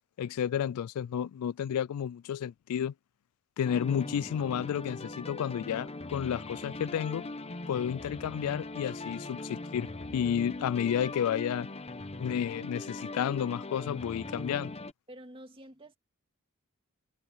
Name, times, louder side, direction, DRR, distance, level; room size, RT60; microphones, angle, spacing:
voice 1, 0.2-2.9 3.6-7.2 7.7-11.7 12.2-14.7, left 9 dB, 90° left, 0.3 m, -31 dB
sound 1, 3.6-14.9, left 2 dB, 30° left, 0.9 m, -40 dB
voice 2, 15.1-16.0, right 1 dB, 25° right, 2.3 m, -48 dB
head